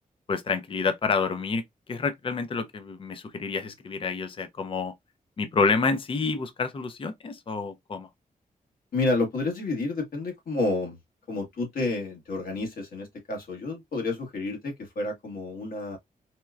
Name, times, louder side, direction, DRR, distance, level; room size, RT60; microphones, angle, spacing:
voice 1, 0.3-1.6 1.9-4.9 5.4-8.1, left 4 dB, 35° left, 0.5 m, -28 dB
voice 2, 8.9-11.0 11.3-16.0, left 2 dB, 80° left, 1.4 m, -30 dB
4.2 x 2.2 x 2.3 m
wide cardioid pair, 105°, 15 cm